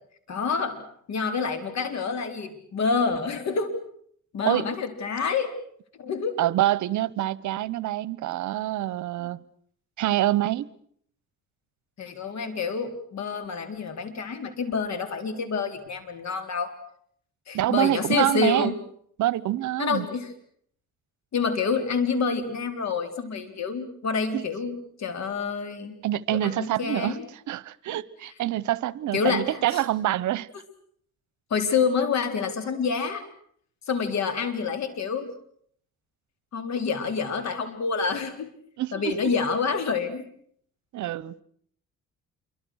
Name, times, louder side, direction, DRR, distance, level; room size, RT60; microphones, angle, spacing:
voice 1, 0.3-3.7 4.3-5.5 6.0-6.4 12.0-16.7 17.5-18.8 19.8-20.3 21.3-26.0 26.3-27.3 29.1-29.8 31.5-33.2 33.9-35.3 36.5-38.5 38.9-40.3, left 5 dB, 65° left, 4.0 m, -28 dB
voice 2, 6.4-9.4 10.0-10.7 17.5-18.7 19.2-20.0 24.3-24.4 26.0-27.2 27.5-30.5 38.8-39.3 40.9-41.3, right 14 dB, 75° right, 0.9 m, -26 dB
27.5 x 24.0 x 6.4 m
cardioid pair, 90°, 30 cm